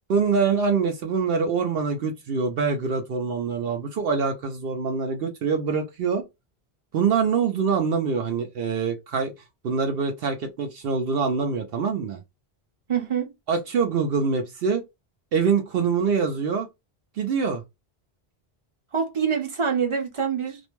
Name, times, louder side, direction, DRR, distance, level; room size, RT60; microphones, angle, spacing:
voice 1, 0.1-6.2 6.9-9.3 9.6-12.2 13.5-14.8 15.3-16.7 17.2-17.6, right 5 dB, 70° right, 0.8 m, -24 dB
voice 2, 12.9-13.3 18.9-20.6, right 7 dB, 35° right, 0.7 m, -25 dB
2.5 x 2.1 x 2.9 m
omnidirectional pair, 1.1 m